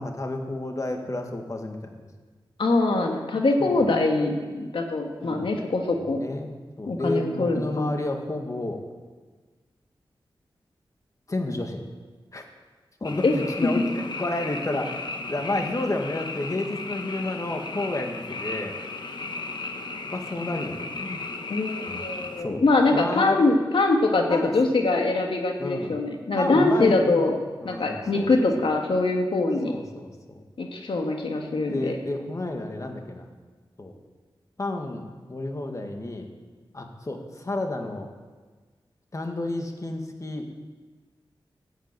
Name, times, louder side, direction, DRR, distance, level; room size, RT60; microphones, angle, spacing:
voice 1, 0.0-2.1 3.6-3.8 5.2-5.5 5.9-6.5 6.8-8.8 11.3-11.8 12.3-12.4 13.0-15.0 15.3-18.8 20.1-21.2 21.9-22.0 22.4-22.6 22.9-23.4 24.3-24.6 25.6-25.9 26.4-27.3 27.6-28.3 28.6-28.7 29.7-30.4 31.7-33.3 33.8-33.9 34.6-35.0 35.3-36.3 36.7-38.1 39.1-40.5, left 2 dB, 35° left, 3 dB, 1.8 m, -31 dB
voice 2, 2.6-6.2 6.9-7.9 13.2-13.3 21.5-27.4 27.6-29.7 30.6-32.0, left 2 dB, 80° left, 2 dB, 1.7 m, -23 dB
Frog, 13.0-22.4, left 3 dB, 60° left, 1.2 m, -35 dB
14.5 x 7.3 x 8.9 m, 1.4 s
wide cardioid pair, 95°, 9 cm